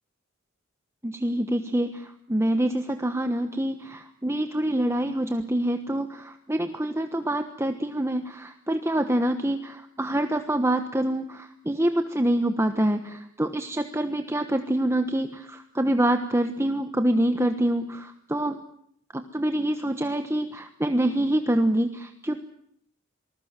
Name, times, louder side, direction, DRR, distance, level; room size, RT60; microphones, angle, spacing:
voice 1, 1.0-18.6 19.1-22.4, right 1 dB, 15° right, 7 dB, 1.3 m, -26 dB
27.5 x 20.0 x 7.5 m, 0.70 s
head